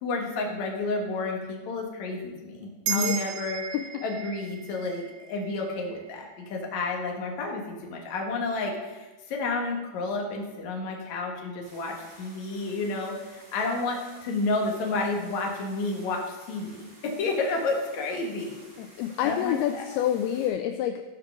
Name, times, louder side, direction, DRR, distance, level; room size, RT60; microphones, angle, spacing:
voice 1, 0.0-3.6 4.0-6.2 6.5-18.6 19.2-19.9, left 3 dB, 55° left, 1 dB, 2.4 m, -31 dB
sound 1, 2.8-7.6, right 8 dB, 90° right, 1.6 m, -36 dB
voice 2, 2.9-3.2 3.7-4.0 18.8-21.0, left 11 dB, 80° left, 7 dB, 2.4 m, -28 dB
sound 2, 11.6-20.5, right 1 dB, 70° right, 5.8 m, -53 dB
15.0 x 5.0 x 6.0 m, 1.2 s
omnidirectional pair, 4.7 m